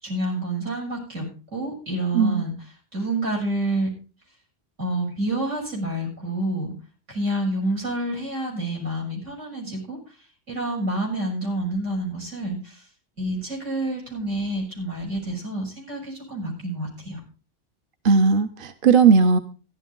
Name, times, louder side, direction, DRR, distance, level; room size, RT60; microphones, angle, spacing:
voice 1, 0.0-3.9 4.8-6.7 7.1-10.1 10.5-12.8 13.2-17.2, right 1 dB, 85° right, -1 dB, 6.8 m, -28 dB
voice 2, 18.0-19.4, right 5 dB, 50° right, 9 dB, 1.0 m, -17 dB
14.5 x 11.0 x 3.9 m, 0.35 s
omnidirectional pair, 1.2 m